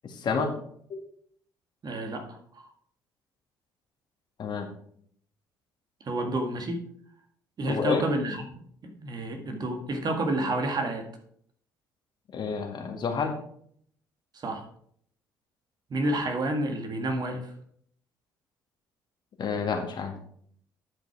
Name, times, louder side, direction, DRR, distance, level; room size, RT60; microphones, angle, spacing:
voice 1, 0.0-0.5 4.4-4.7 7.7-8.0 12.3-13.4 19.4-20.1, left 5 dB, 50° left, 3 dB, 1.9 m, -29 dB
voice 2, 1.8-2.7 6.0-6.8 7.6-8.6 8.9-11.1 14.3-14.6 15.9-17.5, right 1 dB, 45° right, 4 dB, 1.9 m, -29 dB
10.5 x 5.3 x 4.8 m, 0.64 s
hypercardioid pair, 55°, 10 cm